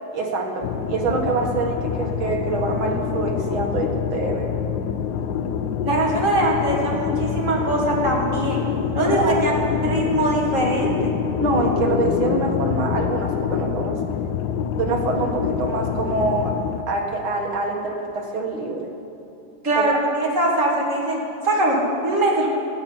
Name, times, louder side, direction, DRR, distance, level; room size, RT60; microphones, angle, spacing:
voice 1, 0.1-4.5 9.0-9.5 11.4-14.0 14.7-16.6 16.9-18.9 19.8-19.9, right 3 dB, 75° right, 1 dB, 2.4 m, -25 dB
sound 1, 0.6-16.8, left 7 dB, 70° left, 1.0 m, -26 dB
voice 2, 5.8-8.6 8.9-9.5 9.8-11.1 19.6-21.8 22.0-22.5, right 1 dB, 40° right, -3 dB, 2.8 m, -22 dB
13.5 x 7.7 x 9.4 m, 2.9 s
omnidirectional pair, 2.2 m